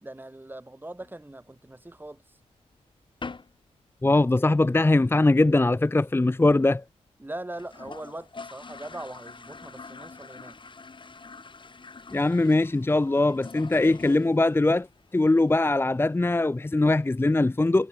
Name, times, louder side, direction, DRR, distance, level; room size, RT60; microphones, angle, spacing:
voice 1, 0.0-2.2 7.2-10.6, right 1 dB, 15° right, 4.1 m, -40 dB
sound 1, 1.0-2.0 2.4-2.5 2.8-2.9 3.2-3.6 3.9-4.0 4.3-4.4 4.7-5.1 5.5-5.6 5.7-5.8 6.1-6.2 6.7-6.8 7.1-7.2 7.4-15.6, left 4 dB, 40° left, 2.8 m, -45 dB
voice 2, 4.0-6.8 12.1-14.9 15.1-17.9, left 2 dB, 20° left, 0.8 m, -21 dB
cardioid pair, 65°, 12 cm